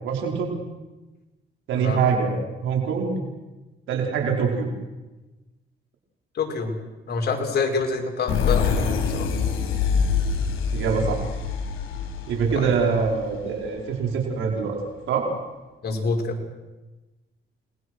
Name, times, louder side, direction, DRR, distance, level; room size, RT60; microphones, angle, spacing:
voice 1, 0.0-0.6 1.7-2.3 2.6-3.2 3.9-4.7 10.7-11.2 12.3-14.8 15.1-15.2, right 6 dB, 85° right, 0 dB, 5.2 m, -24 dB
voice 2, 6.3-6.8 7.1-9.4 12.5-12.7 15.8-16.4, left 4 dB, 55° left, 2 dB, 5.4 m, -26 dB
sound 1, 8.3-13.8, left 6 dB, 85° left, 4.1 m, -25 dB
29.5 x 20.5 x 6.5 m, 1.1 s
cardioid pair, 90°, 20 cm